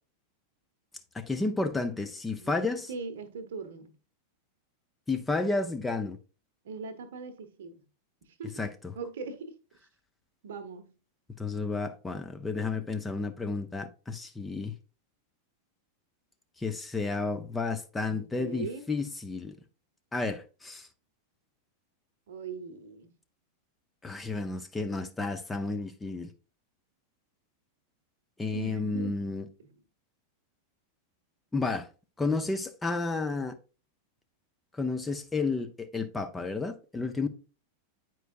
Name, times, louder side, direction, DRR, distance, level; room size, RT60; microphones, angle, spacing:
voice 1, 1.1-2.9 5.1-6.2 8.6-8.9 11.4-14.7 16.6-19.6 20.1-20.9 24.0-26.3 28.4-29.5 31.5-31.9 32.2-33.5 34.7-37.3, left 3 dB, 10° left, 0.6 m, -31 dB
voice 2, 2.9-3.9 6.6-7.8 8.4-8.6 9.0-9.6 10.4-10.9 18.1-18.8 22.3-23.1 28.5-29.7, right 4 dB, 60° right, 1.0 m, -40 dB
9.1 x 4.6 x 2.5 m
figure-of-eight pair, 90°, 0 cm